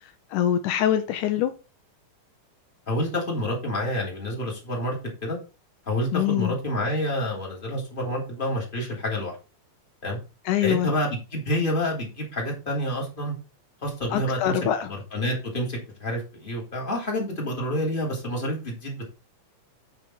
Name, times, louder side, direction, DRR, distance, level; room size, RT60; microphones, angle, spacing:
voice 1, 0.3-1.5 6.1-6.6 10.5-10.9 14.1-14.9, left 10 dB, 80° left, 2.3 m, -24 dB
voice 2, 2.9-5.0 5.2-5.4 5.9-9.4 10.0-10.2 10.6-13.3 13.8-14.6 15.1-19.1, equal, 15° left, 2.9 m, -28 dB
9.0 x 5.3 x 4.4 m
omnidirectional pair, 3.5 m